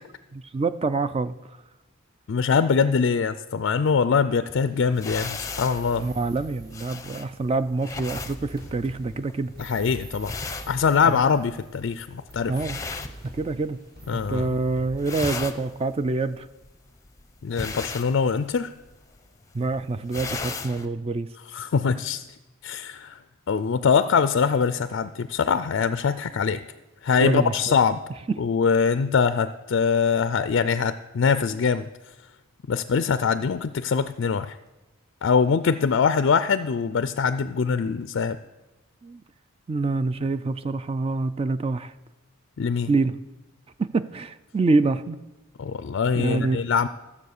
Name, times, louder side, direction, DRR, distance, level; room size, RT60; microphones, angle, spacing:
voice 1, 0.3-1.3 6.0-9.5 11.0-11.2 12.5-12.8 13.3-13.8 14.1-16.5 19.5-21.3 27.2-27.7 28.3-28.4 39.0-39.2 39.7-41.9 42.9-43.2 43.8-45.2 46.1-46.6, right 3 dB, 25° right, 13 dB, 0.3 m, -26 dB
voice 2, 2.3-6.1 9.6-10.3 10.7-12.5 14.1-14.5 17.4-18.7 21.5-22.2 22.6-23.2 23.5-26.6 27.0-28.0 28.4-31.8 32.7-34.6 35.2-38.4 42.6-42.9 45.6-46.9, left 6 dB, 60° left, 12 dB, 0.4 m, -23 dB
sound 1, 4.5-7.2 7.9-11.8 12.3-15.5, right 1 dB, 45° right, 2.0 m, -44 dB
sound 2, 4.9-13.9 14.2-14.6 14.9-20.8, left 4 dB, 15° left, 0.6 m, -37 dB
14.5 x 7.2 x 6.6 m, 1.1 s
head